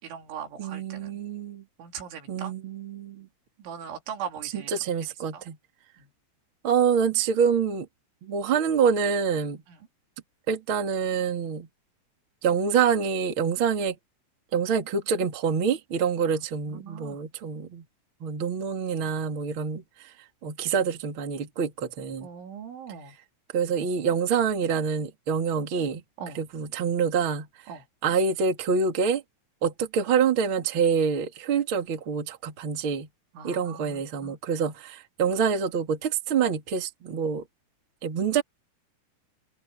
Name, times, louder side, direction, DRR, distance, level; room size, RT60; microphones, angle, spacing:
voice 1, 0.0-1.2 1.8-2.5 3.6-4.7 5.3-5.4 6.0-6.1 9.7-9.8 16.3-16.4 16.7-17.2 22.2-23.1 26.2-26.4 27.7-27.8 33.4-34.4, right 7 dB, 75° right, 5.4 m, -40 dB
voice 2, 0.6-1.6 2.3-3.3 4.5-5.6 6.6-7.9 8.2-9.6 10.5-11.7 12.4-13.9 14.5-17.8 18.2-19.8 20.4-22.3 23.5-26.0 26.3-27.5 28.0-29.2 29.6-33.1 33.4-37.4 38.0-38.4, right 6 dB, 35° right, 2.6 m, -26 dB
omnidirectional pair, 5.5 m